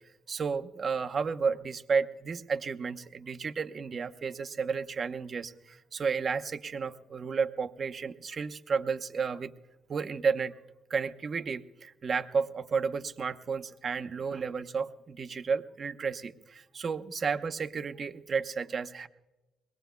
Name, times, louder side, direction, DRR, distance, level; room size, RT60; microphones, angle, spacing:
voice 1, 0.3-9.5 9.9-10.5 10.9-19.1, right 5 dB, 45° right, 7 dB, 0.9 m, -32 dB
22.5 x 20.0 x 2.3 m, 1.1 s
cardioid pair, 90°, 0 cm